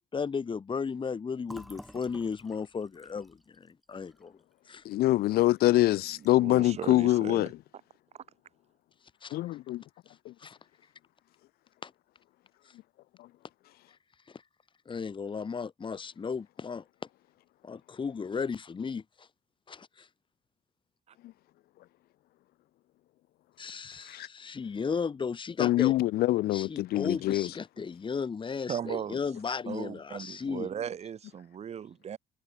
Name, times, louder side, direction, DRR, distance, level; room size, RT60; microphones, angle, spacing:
voice 1, 0.1-4.4 4.7-4.8 9.2-9.4 10.4-10.6 11.8-11.9 14.3-14.4 14.9-16.8 17.6-19.3 19.7-20.1 23.6-25.9 26.5-30.7, left 5 dB, 30° left, 2.3 m, -35 dB
Fill (with liquid), 1.4-5.1 5.5-5.6 5.9-6.5, equal, ahead, 6.1 m, -52 dB
voice 2, 4.9-7.5 9.3-9.8 10.3-10.4 24.1-24.3 25.6-27.5, left 16 dB, 65° left, 0.5 m, -25 dB
voice 3, 6.1-7.5 28.7-29.2 29.7-32.2, right 8 dB, 40° right, 1.0 m, -37 dB
cardioid pair, 110°, 17 cm